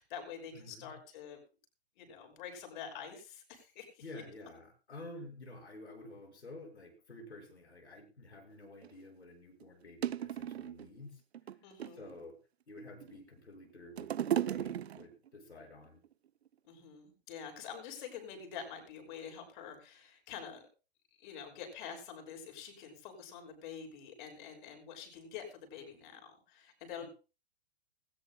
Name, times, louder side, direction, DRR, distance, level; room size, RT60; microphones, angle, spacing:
voice 1, 0.0-1.4 2.0-4.0 11.6-12.1 16.6-20.7 21.2-26.2 26.5-27.1, left 7 dB, 50° left, 4 dB, 6.2 m, -47 dB
voice 2, 0.5-0.9 4.0-11.2 11.9-12.4 12.7-16.0, left 2 dB, 85° left, 2 dB, 5.6 m, -51 dB
sound 1, 8.8-8.9 9.6-9.7 10.0-10.9 11.3-12.1 12.8-13.4 13.7-15.3 16.0-16.1, right 10 dB, 75° right, 0.7 m, -35 dB
20.0 x 19.0 x 2.2 m, 0.33 s
hypercardioid pair, 120°, 32 cm